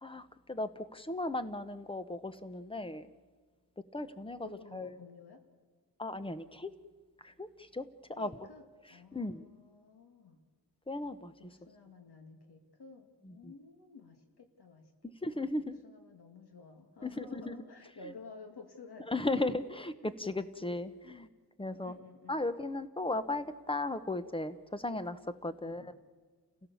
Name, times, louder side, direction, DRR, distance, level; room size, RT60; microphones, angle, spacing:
voice 1, 0.0-3.1 3.9-4.9 6.0-6.7 7.2-7.5 7.7-7.8 8.2-8.3 9.1-9.4 10.9-11.3 13.3-13.5 15.2-15.8 17.0-17.5 19.1-19.9 20.2-21.3 21.6-21.9 22.3-25.8, left 2 dB, 15° left, 12 dB, 0.9 m, -36 dB
voice 2, 4.4-5.4 8.2-10.4 11.4-15.5 15.8-19.5 20.0-20.1 21.0-21.2 21.7-22.4 25.6-25.9, left 4 dB, 75° left, 4 dB, 2.4 m, -52 dB
29.5 x 16.0 x 7.1 m, 1.4 s
wide cardioid pair, 125°, 39 cm